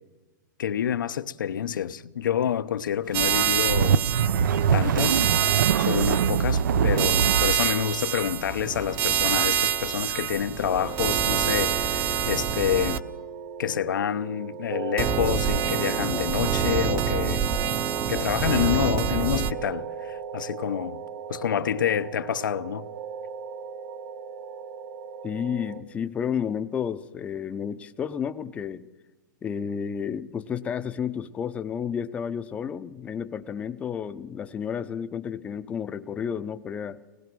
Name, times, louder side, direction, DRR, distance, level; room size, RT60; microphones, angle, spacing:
voice 1, 0.6-4.0 4.7-5.3 5.8-13.0 13.6-17.4 18.1-21.0 21.3-22.8, left 9 dB, 85° left, 0.9 m, -28 dB
sound 1, 3.1-13.0 15.0-19.5, right 8 dB, 25° right, 0.7 m, -26 dB
sound 2, 3.3-7.6, right 7 dB, 80° right, 0.6 m, -23 dB
sound 3, 10.6-25.8, right 6 dB, 50° right, 1.3 m, -37 dB
voice 2, 25.2-28.9 29.4-37.0, left 7 dB, 10° left, 0.6 m, -31 dB
25.0 x 19.0 x 6.2 m
hypercardioid pair, 160°, 10 cm